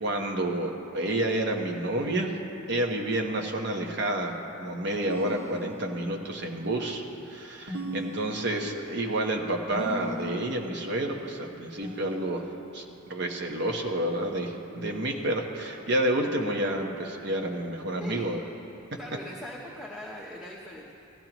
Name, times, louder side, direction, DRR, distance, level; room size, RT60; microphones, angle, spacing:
voice 1, 0.0-2.3 2.7-12.4 12.7-18.4, right 1 dB, 55° right, 2 dB, 1.2 m, -29 dB
sound 1, 5.0-6.2 7.7-8.8 9.7-10.6 11.8-12.8, right 1 dB, 85° right, 1.9 m, -39 dB
voice 2, 19.0-20.9, left 1 dB, 5° right, -4 dB, 0.9 m, -40 dB
18.0 x 14.0 x 3.0 m, 2.8 s
head